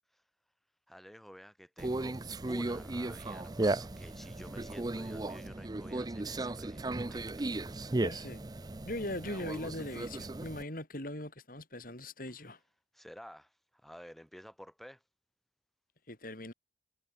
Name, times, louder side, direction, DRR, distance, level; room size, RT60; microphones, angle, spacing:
voice 1, 0.9-2.2 2.5-7.5 12.9-15.0, equal, ahead, 4.8 m, -51 dB
Conversation, 1.8-10.6, right 2 dB, 20° right, 0.5 m, -36 dB
voice 2, 8.0-8.4 8.8-12.6 16.1-16.5, left 1 dB, 50° left, 5.6 m, -40 dB
head